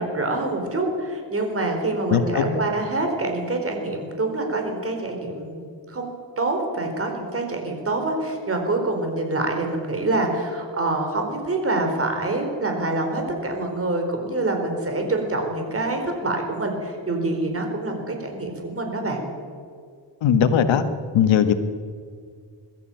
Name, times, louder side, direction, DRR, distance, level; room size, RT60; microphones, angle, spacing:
voice 1, 0.0-5.6 5.9-19.2, right 2 dB, 30° right, 3 dB, 4.5 m, -26 dB
voice 2, 2.1-2.6 20.2-20.8 21.1-21.5, left 8 dB, 85° left, 9 dB, 1.6 m, -19 dB
22.0 x 14.0 x 9.1 m, 2.1 s
cardioid pair, 130°, 44 cm